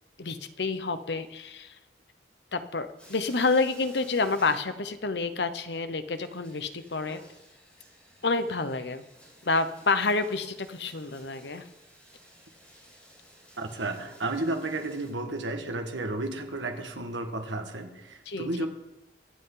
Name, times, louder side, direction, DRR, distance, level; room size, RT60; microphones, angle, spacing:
voice 1, 0.2-1.7 2.5-7.2 8.2-9.0 9.4-11.7 18.3-18.7, left 3 dB, 70° left, 10 dB, 1.0 m, -29 dB
Bathtub (filling or washing), 3.0-5.3 5.5-5.6 6.1-15.1, equal, 5° left, 4.9 m, -55 dB
voice 2, 13.6-18.7, right 2 dB, 85° right, 5 dB, 1.5 m, -32 dB
24.0 x 8.4 x 3.9 m, 0.96 s
head